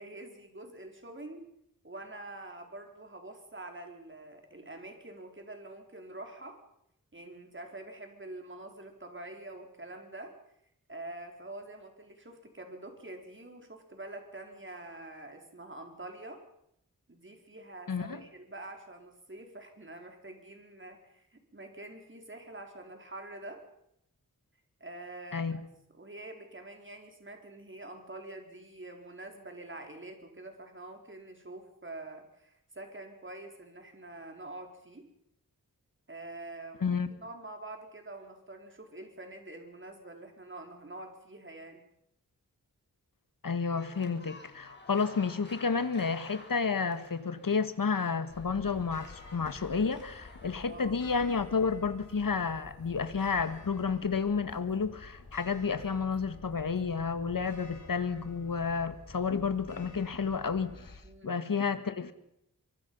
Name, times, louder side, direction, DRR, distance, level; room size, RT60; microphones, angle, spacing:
voice 1, 0.0-1.5 1.8-6.6 7.1-10.3 10.9-16.4 17.1-23.6 24.8-25.6 25.9-35.1 36.1-41.8 50.7-51.0 61.0-61.4, right 2 dB, 35° right, 4 dB, 4.6 m, -46 dB
voice 2, 17.9-18.2 25.3-25.6 36.8-37.1 43.4-62.1, left 5 dB, 75° left, 11 dB, 1.9 m, -31 dB
sound 1, 43.8-50.9, left 2 dB, 30° left, 5.7 m, -53 dB
sound 2, 48.3-61.0, left 3 dB, 55° left, 6.0 m, -51 dB
25.0 x 24.5 x 5.6 m, 0.76 s
wide cardioid pair, 85°, 34 cm